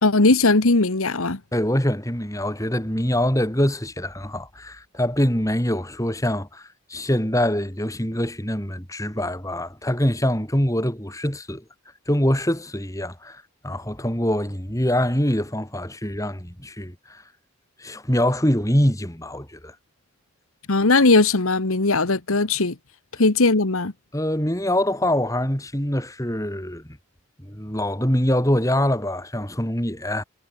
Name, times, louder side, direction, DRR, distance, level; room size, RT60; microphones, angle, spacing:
voice 1, 0.0-1.4 20.7-22.7 23.2-23.9, left 3 dB, 75° left, 1.5 m, -18 dB
voice 2, 1.5-11.6 12.1-17.2 17.8-19.7 24.1-26.8 27.4-30.2, left 1 dB, 15° left, 3.5 m, -24 dB
head